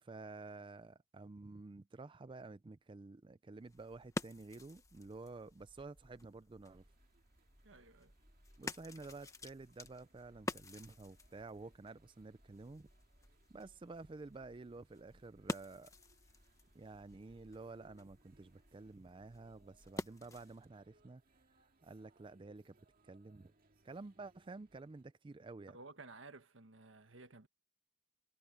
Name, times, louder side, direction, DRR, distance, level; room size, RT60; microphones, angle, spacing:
voice 1, 0.0-6.8 8.6-12.9 13.5-15.9 16.7-21.2 21.6-22.8 23.0-23.5 23.8-25.8, right 3 dB, 25° right, 0.4 m, -51 dB
sound 1, 3.6-20.7, left 2 dB, 15° left, 1.2 m, -50 dB
sound 2, 6.7-25.0, right 2 dB, 50° right, 2.3 m, -72 dB
voice 2, 7.6-8.1 25.7-27.5, right 3 dB, 90° right, 1.6 m, -55 dB
head